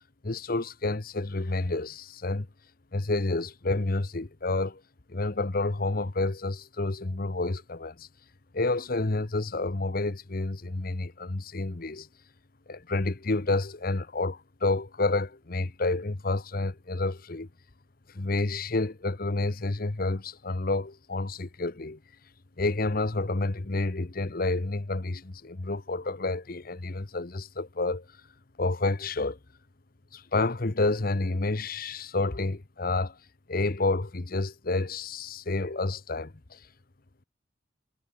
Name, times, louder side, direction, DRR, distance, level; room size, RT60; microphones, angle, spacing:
voice 1, 0.2-2.5 2.9-4.8 5.1-8.1 8.5-12.1 12.7-17.5 18.1-22.0 22.6-28.0 28.6-29.4 30.1-33.2 33.5-36.6, left 2 dB, 50° left, 1.0 m, -29 dB
head